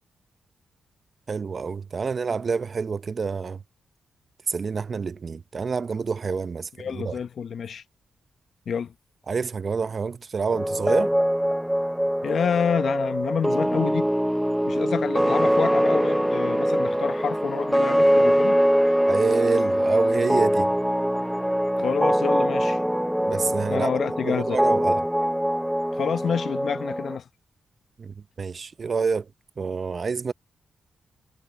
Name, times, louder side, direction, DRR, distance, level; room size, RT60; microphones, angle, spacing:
voice 1, 1.3-3.6 4.5-7.2 9.3-11.1 19.1-20.7 23.2-23.9 24.2-25.1 28.0-29.3 29.6-30.3, right 5 dB, 50° right, 0.7 m, -27 dB
voice 2, 6.8-7.8 8.7-8.9 12.2-14.1 14.6-18.6 21.8-22.8 23.7-24.6 25.9-27.2, left 7 dB, 65° left, 1.0 m, -28 dB
sound 1, 10.5-27.2, equal, 5° right, 0.9 m, -23 dB
supercardioid pair, 55°, 0 cm